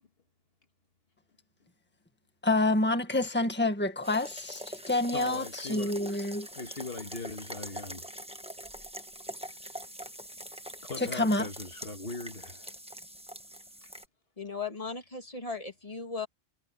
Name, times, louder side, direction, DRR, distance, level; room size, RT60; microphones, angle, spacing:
voice 1, 2.4-6.5 11.0-11.5, left 2 dB, 10° left, 1.8 m, -28 dB
sound 1, 4.0-14.1, right 1 dB, 5° right, 1.3 m, -44 dB
voice 2, 5.1-5.9 6.6-8.0 10.8-12.7, left 3 dB, 70° left, 1.9 m, -40 dB
voice 3, 14.4-16.3, left 4 dB, 35° left, 2.4 m, -37 dB
omnidirectional pair, 1.1 m